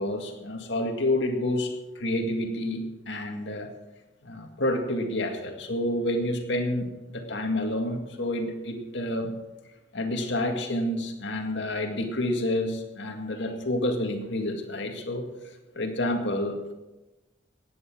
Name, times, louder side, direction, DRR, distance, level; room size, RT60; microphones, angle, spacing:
voice 1, 0.0-3.7 4.2-9.3 9.9-15.3 15.8-16.7, left 1 dB, 70° left, 4 dB, 2.0 m, -29 dB
15.5 x 9.8 x 6.2 m, 1.1 s
head